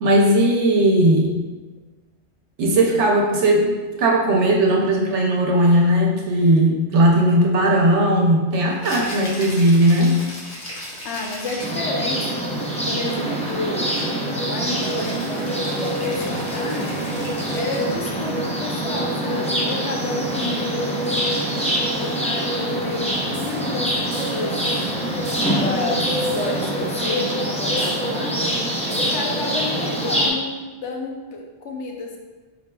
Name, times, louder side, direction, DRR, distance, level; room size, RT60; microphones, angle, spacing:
voice 1, 0.0-1.3 2.6-10.2, right 1 dB, 80° right, 0 dB, 1.0 m, -17 dB
Rattle (instrument), 8.7-11.9 14.8-18.0, equal, 60° left, 1.2 m, -36 dB
voice 2, 11.0-12.5 12.9-13.9 14.5-17.1 17.5-21.6 22.0-23.9 24.2-24.8 25.6-28.4 28.8-32.2, left 3 dB, 80° left, 0 dB, 1.0 m, -30 dB
sound 1, 11.6-30.3, right 1 dB, 10° left, 0.3 m, -24 dB
sound 2, 23.3-23.6 24.1-24.5 25.2-25.5 26.2-26.6 27.8-28.1 28.9-29.3, right 2 dB, 45° right, 0.8 m, -40 dB
4.3 x 4.2 x 2.3 m, 1.3 s
omnidirectional pair, 1.2 m